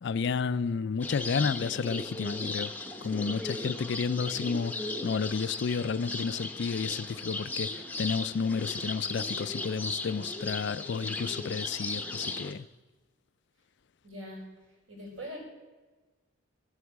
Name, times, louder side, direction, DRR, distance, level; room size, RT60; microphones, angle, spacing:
voice 1, 0.0-2.7 3.0-12.7, left 5 dB, 55° left, 0.4 m, -31 dB
sound 1, 1.0-12.5, left 2 dB, 10° left, 0.7 m, -37 dB
voice 2, 14.0-14.4 14.9-15.4, equal, 65° right, 4.9 m, -42 dB
14.0 x 8.0 x 7.3 m
head